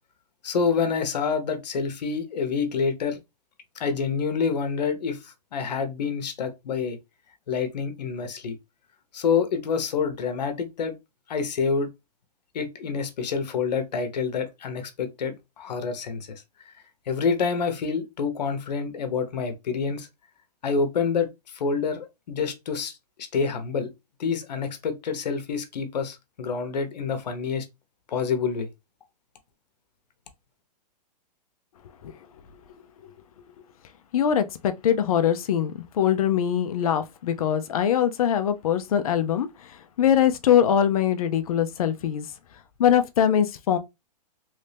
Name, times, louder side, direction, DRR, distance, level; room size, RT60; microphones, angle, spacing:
voice 1, 0.4-3.2 3.8-7.0 7.5-8.6 9.1-10.9 11.3-11.9 12.5-16.7 17.1-20.1 20.6-23.9 24.2-27.7 28.1-28.7, left 5 dB, 75° left, 1.0 m, -27 dB
voice 2, 34.1-42.3 42.8-43.8, left 9 dB, 55° left, 0.6 m, -22 dB
3.2 x 2.6 x 3.3 m
hypercardioid pair, 160°, 21 cm